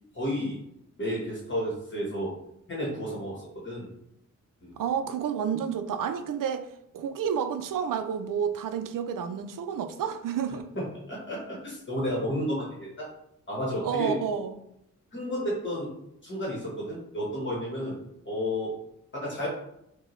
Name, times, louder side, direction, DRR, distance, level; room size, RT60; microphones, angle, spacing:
voice 1, 0.1-0.6 1.0-2.3 2.7-3.9 4.6-4.8 11.1-13.1 13.5-14.2 15.1-15.9 16.2-17.9 18.2-18.7 19.1-19.5, equal, 40° left, 1.2 m, -31 dB
voice 2, 4.8-6.7 6.9-10.7 13.8-14.5, right 7 dB, 85° right, 0.5 m, -30 dB
5.5 x 2.2 x 3.1 m
wide cardioid pair, 170°, 31 cm